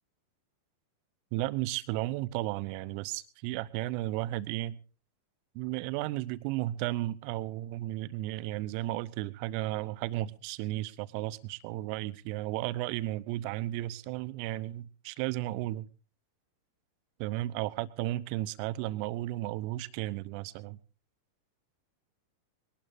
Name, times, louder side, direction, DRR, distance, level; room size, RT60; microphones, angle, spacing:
voice 1, 1.3-4.8 5.5-15.9 17.2-20.8, right 16 dB, 45° right, 0.8 m, -34 dB
22.0 x 18.5 x 2.6 m
figure-of-eight pair, 90°, 0 cm